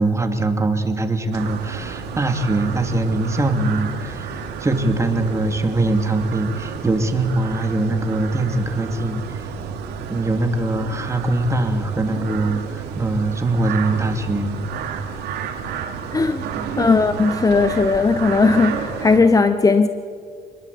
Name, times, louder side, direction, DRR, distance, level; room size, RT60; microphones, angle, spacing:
voice 1, 0.0-9.5 10.1-14.6 16.5-16.7, right 2 dB, 15° right, 5 dB, 2.7 m, -22 dB
sound 1, 1.3-19.2, right 6 dB, 80° right, 3.3 m, -31 dB
voice 2, 16.1-16.4 16.8-19.9, left 4 dB, 20° left, 10 dB, 1.0 m, -17 dB
26.5 x 21.0 x 8.5 m, 2.2 s
cardioid pair, 110°, 17 cm